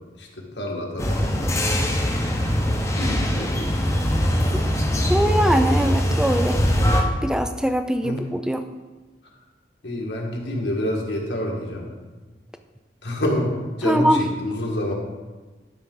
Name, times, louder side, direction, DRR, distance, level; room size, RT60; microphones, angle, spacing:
voice 1, 0.6-1.3 2.9-3.8 8.0-8.2 9.8-11.9 13.0-14.9, left 1 dB, 85° left, -1 dB, 1.8 m, -27 dB
sound 1, 1.0-7.0, equal, 15° left, 0.8 m, -22 dB
voice 2, 5.1-6.6 7.2-8.6 13.8-14.2, equal, 5° right, 8 dB, 0.4 m, -22 dB
12.0 x 6.0 x 3.9 m, 1.3 s
head